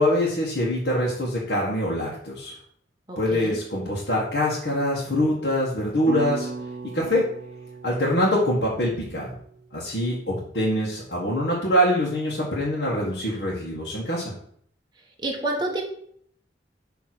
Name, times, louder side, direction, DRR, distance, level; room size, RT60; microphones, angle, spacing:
voice 1, 0.0-2.6 3.2-6.5 6.9-7.2 7.8-9.4 9.7-14.3, left 1 dB, 75° left, -7 dB, 1.7 m, -24 dB
voice 2, 3.1-3.6 15.2-15.8, right 2 dB, 25° right, -1 dB, 1.5 m, -28 dB
sound 1, 6.1-10.3, right 3 dB, 65° right, 0.8 m, -37 dB
7.3 x 3.4 x 6.1 m, 0.64 s
head